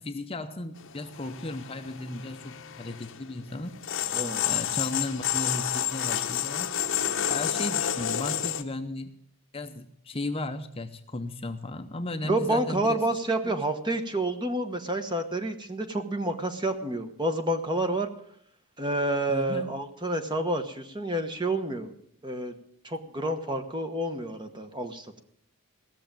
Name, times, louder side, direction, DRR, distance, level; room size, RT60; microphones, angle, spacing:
voice 1, 0.0-4.1 4.5-6.7 7.3-9.2 9.5-13.0 13.4-13.5 19.3-19.8, left 2 dB, 25° left, 7 dB, 0.6 m, -35 dB
sound 1, 0.8-8.6, left 10 dB, 60° left, 0.9 m, -30 dB
voice 2, 4.1-4.4 12.2-18.1 18.8-21.9 22.2-22.5 22.8-25.2, right 1 dB, 20° right, 7 dB, 1.1 m, -29 dB
16.5 x 6.8 x 8.9 m, 0.70 s
head